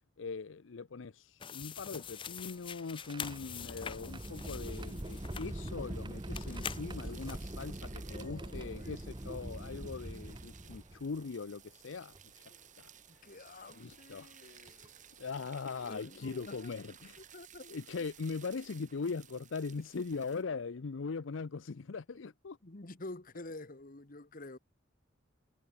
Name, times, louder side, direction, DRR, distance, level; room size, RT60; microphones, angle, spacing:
voice 1, 0.2-12.4 12.8-12.9 13.7-14.3 15.2-17.2 17.7-22.6, left 4 dB, 75° left, 0.6 m, -41 dB
sound 1, 1.4-5.8 6.3-7.4, left 8 dB, 25° left, 0.5 m, -45 dB
sound 2, 1.9-11.2 12.1-12.2 13.7-13.9 14.7-14.9 16.5-16.6 17.0-17.2, right 1 dB, 25° right, 1.2 m, -43 dB
sound 3, 4.1-20.4, right 10 dB, 40° right, 2.8 m, -58 dB
voice 2, 7.0-7.4 8.0-8.9 12.5-12.7 13.1-15.2 15.7-16.8 17.2-18.1 20.1-20.6 22.1-22.3 22.6-24.6, left 2 dB, 45° left, 1.4 m, -49 dB
head